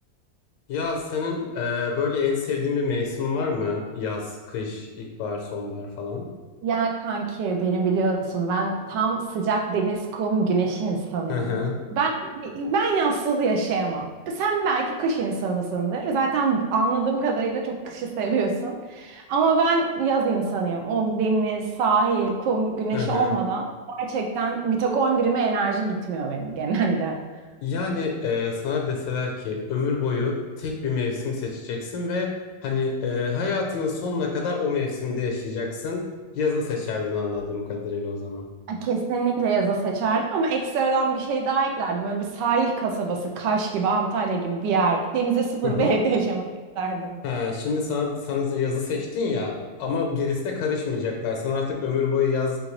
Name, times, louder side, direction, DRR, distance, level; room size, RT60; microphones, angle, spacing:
voice 1, 0.7-6.2 11.3-11.8 22.9-23.3 27.6-32.3 32.6-36.0 36.3-38.4 45.6-46.0 47.2-49.5 49.8-52.6, left 5 dB, 80° left, 1 dB, 1.4 m, -27 dB
voice 2, 6.6-11.6 11.9-23.7 24.0-27.2 38.7-46.4 46.8-47.1, right 4 dB, 80° right, 2 dB, 1.2 m, -24 dB
3.9 x 3.8 x 3.1 m, 1.4 s
omnidirectional pair, 2.0 m